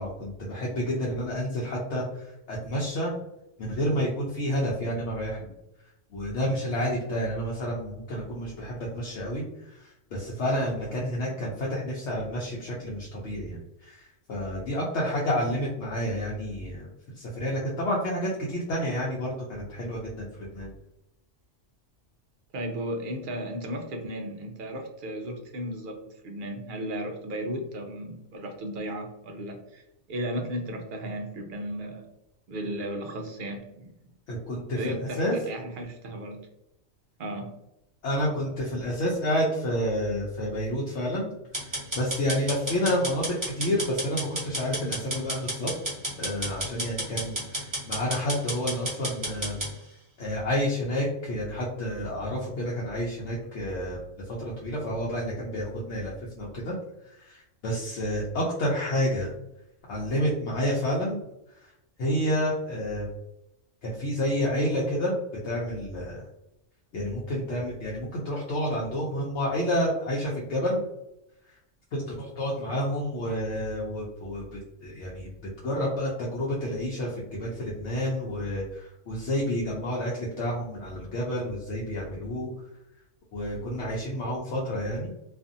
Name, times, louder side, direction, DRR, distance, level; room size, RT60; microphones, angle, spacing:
voice 1, 0.0-3.1 3.6-5.5 6.1-16.9 17.1-20.3 20.5-20.7 34.3-35.4 38.0-49.7 50.2-54.0 54.2-56.8 57.0-59.3 59.9-61.2 61.5-61.7 62.0-63.1 63.8-66.2 66.9-70.8 71.9-75.3 75.6-82.5 83.3-85.1, equal, 70° left, -4 dB, 0.9 m, -29 dB
voice 2, 22.5-32.1 32.5-33.9 34.7-36.5 37.2-37.6 46.1-46.2, right 1 dB, 60° right, 3 dB, 0.5 m, -35 dB
sound 1, 41.5-49.7, right 1 dB, 15° right, 1.0 m, -32 dB
2.5 x 2.4 x 2.5 m, 0.86 s
omnidirectional pair, 1.3 m